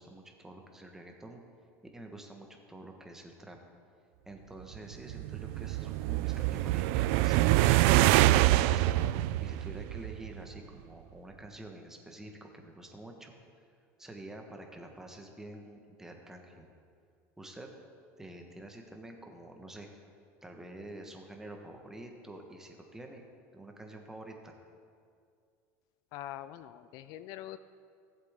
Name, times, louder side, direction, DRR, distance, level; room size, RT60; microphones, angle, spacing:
voice 1, 0.0-1.4 1.9-3.6 4.3-7.4 9.4-13.3 14.0-16.7 17.4-17.7 18.2-19.9 20.4-23.2 23.5-24.5, right 1 dB, 5° right, 2 dB, 1.3 m, -48 dB
sound 1, 4.9-10.4, right 16 dB, 75° right, 0.3 m, -25 dB
voice 2, 26.1-27.6, left 13 dB, 60° left, 13 dB, 0.4 m, -43 dB
18.0 x 7.8 x 3.7 m, 2.3 s
cardioid pair, 140°, 7 cm